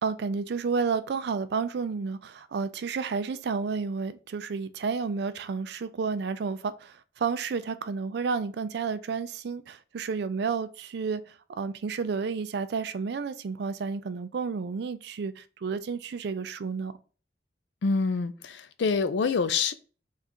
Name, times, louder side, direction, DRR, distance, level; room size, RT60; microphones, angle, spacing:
voice 1, 0.0-16.9, right 5 dB, 65° right, 0.4 m, -31 dB
voice 2, 17.8-19.7, left 4 dB, 80° left, 0.4 m, -26 dB
3.6 x 2.4 x 4.2 m
head